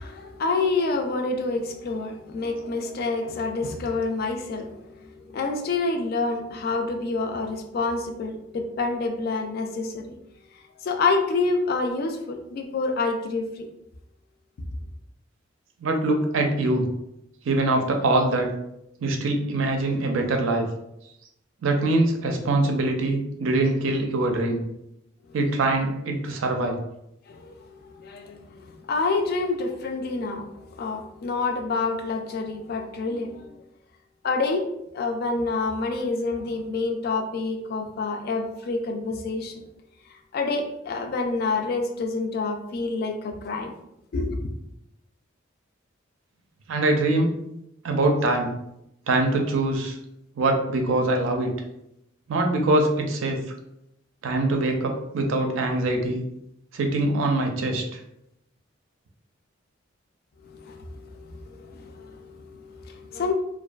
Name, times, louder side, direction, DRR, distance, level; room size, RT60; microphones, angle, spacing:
voice 1, 0.0-10.2 10.8-13.7 27.3-33.6 34.2-34.6 34.9-39.6 40.1-43.7 44.1-44.5 60.4-63.3, left 3 dB, 50° left, 4 dB, 0.3 m, -28 dB
voice 2, 15.8-16.9 17.4-18.5 19.0-20.7 21.6-24.6 25.3-26.8 46.7-47.3 47.8-48.6 49.1-50.0 50.4-51.5 52.3-53.4 54.2-56.2 56.7-58.0, right 2 dB, 80° right, 3 dB, 0.4 m, -23 dB
2.5 x 2.2 x 2.2 m, 0.83 s
head